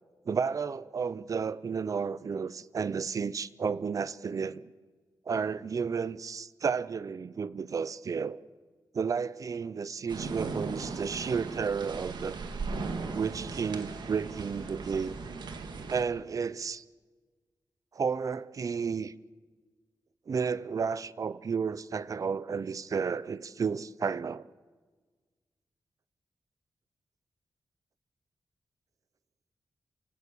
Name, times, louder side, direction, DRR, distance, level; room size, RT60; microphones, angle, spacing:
voice 1, 0.3-4.6 5.3-8.4 8.9-12.4 13.1-15.2 15.9-16.8 17.9-19.1 20.3-24.5, right 6 dB, 50° right, 0.6 m, -32 dB
sound 1, 10.1-16.0, right 4 dB, 80° right, 2.0 m, -38 dB
27.0 x 16.5 x 8.5 m
wide cardioid pair, 160°, 7 cm